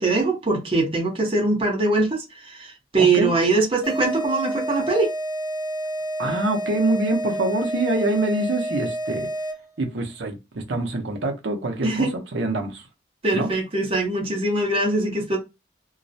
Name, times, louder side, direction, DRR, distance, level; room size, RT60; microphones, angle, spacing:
voice 1, 0.0-5.1 11.8-12.1 13.2-15.4, right 3 dB, 30° right, 0.7 m, -22 dB
voice 2, 3.0-3.3 6.2-9.3 9.8-12.1 12.3-12.8 13.3-13.5, right 2 dB, 70° right, 0.6 m, -25 dB
sound 1, 3.8-9.8, right 1 dB, 25° left, 0.6 m, -29 dB
2.3 x 2.0 x 2.6 m
head